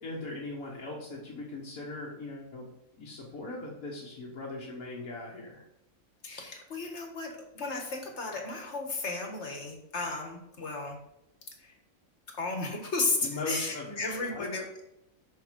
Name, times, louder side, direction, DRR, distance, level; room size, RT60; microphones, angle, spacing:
voice 1, 0.0-2.7 3.0-5.6 13.2-14.5, left 2 dB, 80° left, -4 dB, 1.9 m, -39 dB
voice 2, 6.2-11.0 11.6-11.8 12.4-14.6, left 3 dB, 55° left, 2 dB, 1.9 m, -34 dB
6.5 x 6.5 x 5.2 m, 0.83 s
omnidirectional pair, 1.5 m